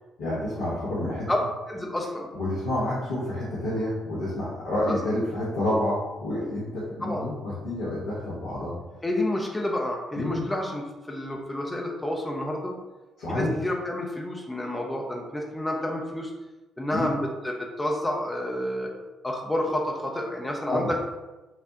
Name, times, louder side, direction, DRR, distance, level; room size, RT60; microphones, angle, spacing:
voice 1, 0.2-1.3 2.3-8.8 10.2-10.5 13.2-13.6 16.9-17.1 20.7-20.9, left 1 dB, 70° left, -9 dB, 1.0 m, -29 dB
voice 2, 1.7-2.3 4.9-5.0 7.0-7.3 9.0-10.8 11.1-12.7 13.3-16.3 16.8-18.9 19.2-20.9, left 1 dB, 15° left, -1 dB, 0.7 m, -29 dB
5.7 x 2.2 x 2.8 m, 1.1 s
figure-of-eight pair, 45°, 0 cm